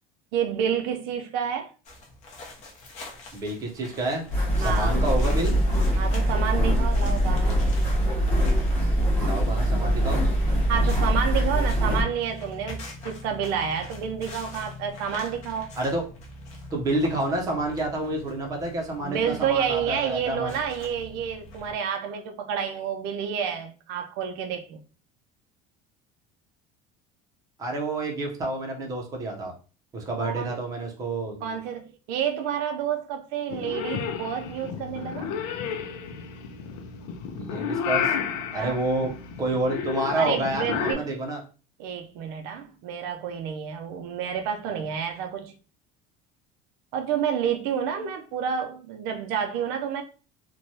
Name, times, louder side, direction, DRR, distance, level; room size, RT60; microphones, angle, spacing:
voice 1, 0.3-1.7 4.6-5.0 6.0-7.6 10.7-15.7 19.0-24.8 30.2-30.5 31.4-35.3 38.5-38.8 40.2-41.1 41.8-45.5 46.9-50.0, right 8 dB, 65° right, 0.4 m, -29 dB
sound 1, 1.8-21.7, left 1 dB, 40° left, 0.8 m, -44 dB
voice 2, 3.3-4.2 4.6-5.5 9.2-10.2 15.7-16.0 16.7-20.5 27.6-29.5 29.9-31.6 37.3-38.1 38.5-41.4, right 2 dB, 20° right, 0.6 m, -29 dB
sound 2, 4.3-12.0, equal, 10° left, 0.9 m, -23 dB
Purr / Meow, 33.5-40.9, left 7 dB, 85° left, 0.5 m, -31 dB
3.0 x 2.2 x 2.6 m
cardioid pair, 170°, 18 cm